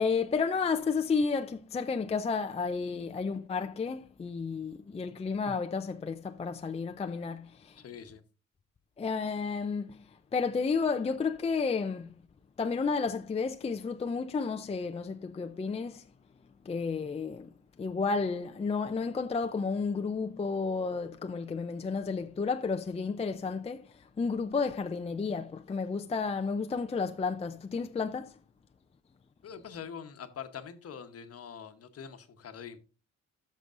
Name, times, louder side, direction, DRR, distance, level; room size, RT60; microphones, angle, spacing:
voice 1, 0.0-7.8 9.0-10.0 10.3-12.1 12.6-16.0 16.7-17.5 17.8-23.8 24.2-28.3, left 5 dB, 20° left, 0.5 m, -32 dB
voice 2, 7.8-8.2 29.4-32.8, left 7 dB, 50° left, 1.1 m, -44 dB
13.5 x 6.2 x 2.5 m
cardioid pair, 90°, 30 cm